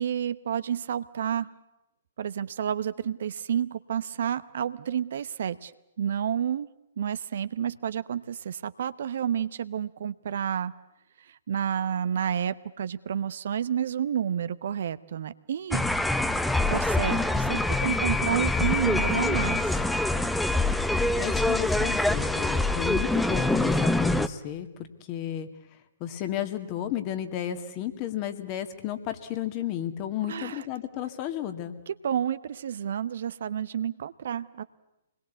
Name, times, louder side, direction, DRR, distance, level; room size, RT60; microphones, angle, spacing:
voice 1, 0.0-1.5 2.2-5.7 6.0-6.7 7.0-10.7 11.3-15.9 16.7-19.7 30.3-30.6 31.9-34.6, right 9 dB, 60° right, 14 dB, 0.9 m, -30 dB
sound 1, 15.7-24.3, left 2 dB, 5° left, 0.8 m, -25 dB
voice 2, 21.2-24.7 25.1-25.5 26.0-31.7, left 11 dB, 35° left, 8 dB, 2.1 m, -33 dB
26.0 x 21.0 x 8.3 m, 0.91 s
figure-of-eight pair, 120°, 0 cm